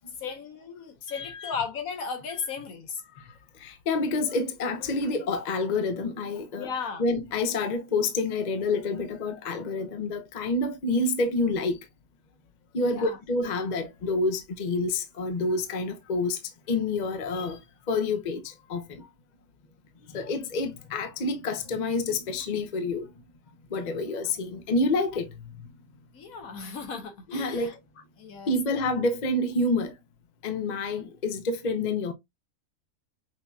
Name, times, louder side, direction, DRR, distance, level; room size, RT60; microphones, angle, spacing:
voice 1, 0.2-3.0 6.5-7.0 12.8-13.2 26.1-27.7 28.2-28.6, left 5 dB, 70° left, 1.4 m, -35 dB
voice 2, 1.1-1.5 3.2-6.7 7.0-11.8 12.7-16.4 16.7-17.6 17.9-19.1 20.0-23.1 23.7-25.5 27.3-27.7 28.5-29.9 30.4-32.1, left 2 dB, 40° left, 0.7 m, -28 dB
6.1 x 2.8 x 2.3 m
omnidirectional pair, 1.5 m